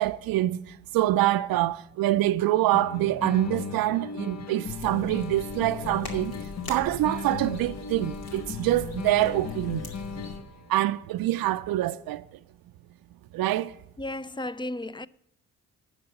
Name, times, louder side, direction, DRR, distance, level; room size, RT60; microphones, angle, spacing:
voice 1, 0.0-6.4 6.7-9.9 10.7-12.2 13.3-13.7, right 15 dB, 70° right, 0.5 m, -25 dB
sound 1, 2.7-10.7, left 6 dB, 45° left, 0.8 m, -37 dB
sound 2, 4.6-10.4, left 1 dB, 75° left, 2.5 m, -43 dB
voice 2, 14.0-15.1, left 1 dB, 15° left, 0.4 m, -34 dB
10.5 x 6.7 x 6.6 m
supercardioid pair, 50°, 37 cm